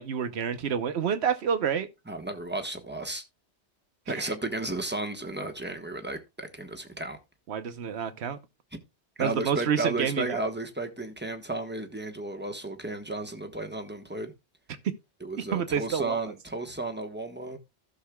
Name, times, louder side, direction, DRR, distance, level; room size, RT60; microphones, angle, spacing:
voice 1, 0.0-1.9 4.2-4.3 7.5-8.4 9.2-10.4 14.8-14.9 15.4-16.2, right 7 dB, 70° right, 1.1 m, -28 dB
voice 2, 2.1-3.2 4.1-7.2 9.2-14.3 15.2-17.6, right 2 dB, 10° right, 1.1 m, -33 dB
15.5 x 6.5 x 2.3 m
omnidirectional pair, 1.2 m